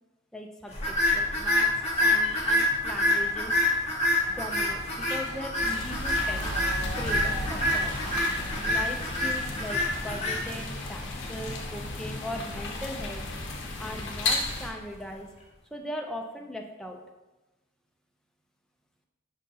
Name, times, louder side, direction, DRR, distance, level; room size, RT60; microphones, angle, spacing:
voice 1, 0.3-1.7 2.0-3.5 4.4-6.5 6.8-7.9 8.6-13.2 13.8-15.3 15.7-17.0, left 1 dB, 5° left, 1 dB, 0.4 m, -39 dB
sound 1, 0.7-15.1, left 1 dB, 30° left, 0.9 m, -28 dB
Motorcycle, 4.2-10.3, right 2 dB, 55° right, 0.6 m, -43 dB
sound 2, 5.5-14.7, left 2 dB, 60° left, 0.7 m, -34 dB
5.5 x 2.5 x 3.9 m, 1.1 s
head